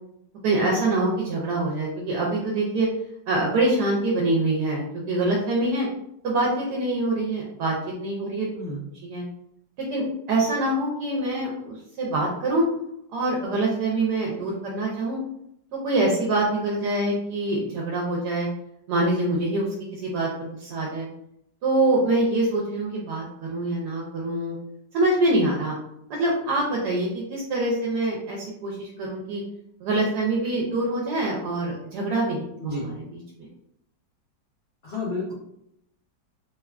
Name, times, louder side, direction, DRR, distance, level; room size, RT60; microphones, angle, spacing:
voice 1, 0.4-2.9 3.3-5.9 6.2-8.5 9.0-9.2 9.8-12.6 13.1-15.2 15.8-18.5 18.9-21.1 21.6-24.5 24.9-25.7 26.1-29.4 29.8-32.9 33.4-33.5, right 2 dB, 75° right, -3 dB, 1.1 m, -25 dB
voice 2, 8.5-8.8 32.6-32.9 34.8-35.3, left 2 dB, 70° left, -6 dB, 0.6 m, -31 dB
3.3 x 2.2 x 2.3 m, 0.76 s
omnidirectional pair, 2.0 m